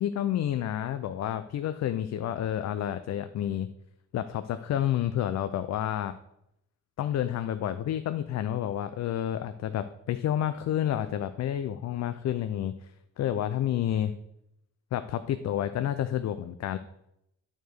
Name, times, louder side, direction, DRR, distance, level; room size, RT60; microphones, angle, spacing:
voice 1, 0.0-3.7 4.1-6.2 7.0-12.9 13.2-14.1 14.9-16.8, left 11 dB, 60° left, 11 dB, 0.5 m, -29 dB
9.3 x 4.4 x 6.4 m, 0.80 s
cardioid pair, 90°, 30 cm